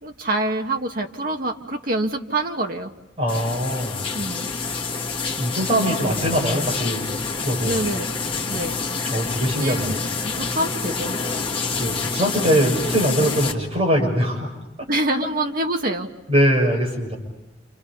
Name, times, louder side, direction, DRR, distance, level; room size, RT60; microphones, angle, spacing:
voice 1, 0.0-2.9 4.1-4.5 7.7-8.1 8.5-8.8 9.6-10.0 10.2-11.2 14.9-16.1, right 1 dB, 55° right, 3 dB, 2.0 m, -26 dB
voice 2, 3.2-4.1 5.4-7.8 9.0-10.0 11.8-14.5 16.3-17.2, equal, 35° right, -1 dB, 6.9 m, -22 dB
sound 1, 3.3-13.5, left 4 dB, 30° left, 2.1 m, -27 dB
29.5 x 29.5 x 5.5 m, 0.89 s
head